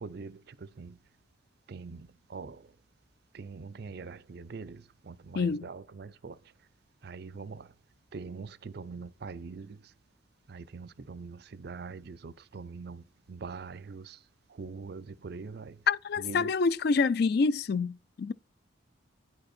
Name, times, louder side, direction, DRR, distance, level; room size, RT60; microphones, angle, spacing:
voice 1, 0.0-0.4 0.8-1.0 1.7-2.6 3.3-6.4 7.0-7.7 8.1-9.8 10.5-13.0 13.3-14.2 14.6-15.8 16.2-16.5, right 4 dB, 50° right, 0.4 m, -43 dB
voice 2, 5.3-5.7 15.9-18.3, left 4 dB, 50° left, 0.3 m, -27 dB
9.3 x 5.2 x 4.3 m
head